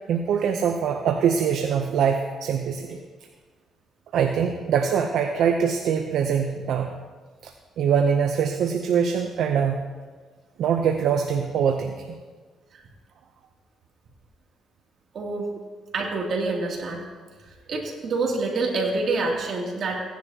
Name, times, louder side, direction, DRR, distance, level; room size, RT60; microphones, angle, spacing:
voice 1, 0.1-3.0 4.1-7.0 7.4-9.8 10.6-11.9, right 7 dB, 75° right, 4 dB, 0.7 m, -23 dB
voice 2, 15.1-15.5 15.9-17.0 17.7-20.0, right 3 dB, 60° right, -1 dB, 2.7 m, -26 dB
16.5 x 10.0 x 2.9 m, 1.4 s
cardioid pair, 90°, 0 cm